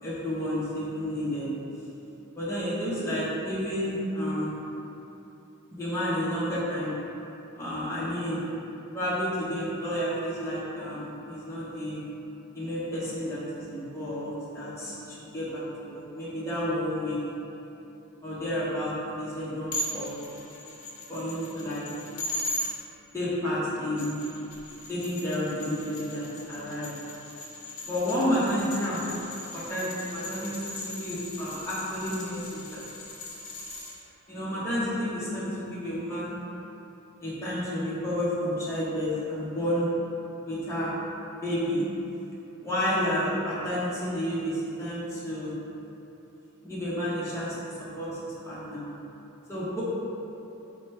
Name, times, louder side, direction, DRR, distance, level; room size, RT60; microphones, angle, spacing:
voice 1, 0.0-1.5 2.3-4.6 5.7-6.9 7.5-8.4 8.9-12.0 12.5-17.2 18.2-20.2 21.1-21.9 23.1-24.1 24.9-26.9 27.8-29.1 29.5-32.9 34.3-36.4 37.2-39.9 40.4-40.9 41.4-41.9 42.6-45.6 46.6-48.9 49.5-49.8, equal, 15° left, -10 dB, 0.7 m, -31 dB
sound 1, 19.7-22.7 23.8-33.9, left 1 dB, 70° left, 0.8 m, -38 dB
4.9 x 2.2 x 4.2 m, 3.0 s
head